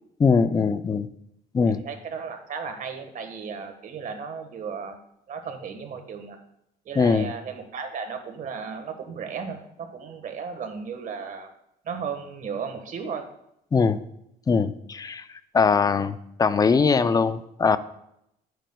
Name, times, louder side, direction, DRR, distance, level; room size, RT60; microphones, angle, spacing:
voice 1, 0.2-1.1 1.5-1.8 7.0-7.3 13.7-14.0 14.5-15.2 15.5-17.8, left 5 dB, 20° left, 13 dB, 0.5 m, -21 dB
voice 2, 1.6-5.0 5.3-6.4 6.8-11.5 11.8-13.2, right 6 dB, 50° right, 6 dB, 1.4 m, -35 dB
10.5 x 9.2 x 2.3 m, 0.77 s
cardioid pair, 110°, 17 cm